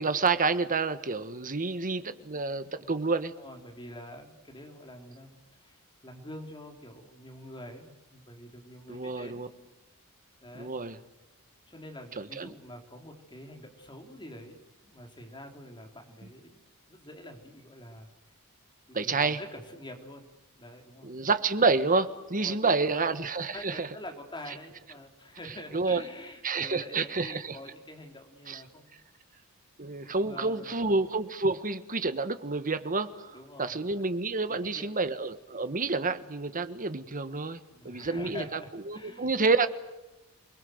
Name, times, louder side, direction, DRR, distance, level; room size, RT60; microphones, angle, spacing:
voice 1, 0.0-3.3 8.9-9.5 10.5-11.0 12.2-12.5 18.9-19.4 21.0-23.9 25.7-26.0 26.4-27.6 28.5-28.6 29.8-37.6 37.8-38.6 38.9-39.7, right 4 dB, 40° right, 11 dB, 1.5 m, -29 dB
voice 2, 2.3-2.9 3.4-9.5 10.4-10.8 11.7-16.6 16.9-18.1 18.9-21.1 22.3-23.1 23.3-29.0 30.2-31.0 33.3-34.1 34.6-34.9 37.7-39.3, left 1 dB, 20° left, 3 dB, 3.8 m, -46 dB
28.5 x 21.0 x 7.9 m, 1.0 s
head